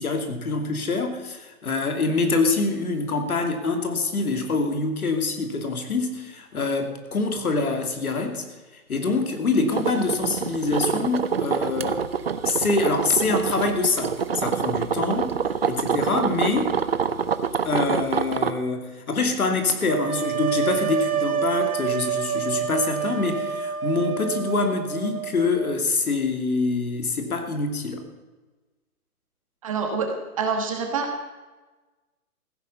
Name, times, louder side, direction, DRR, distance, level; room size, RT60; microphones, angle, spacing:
voice 1, 0.0-8.4 8.7-12.0 12.4-15.3 15.7-16.7 17.6-28.0, left 3 dB, 70° left, 5 dB, 2.9 m, -25 dB
sound 1, 9.7-18.5, right 6 dB, 40° right, 0.7 m, -26 dB
sound 2, 19.9-25.7, right 8 dB, 70° right, 1.4 m, -27 dB
voice 2, 29.6-30.1 30.4-31.1, right 5 dB, 20° right, 4 dB, 1.5 m, -26 dB
15.0 x 9.7 x 6.9 m, 1.2 s
hypercardioid pair, 170°, 45 cm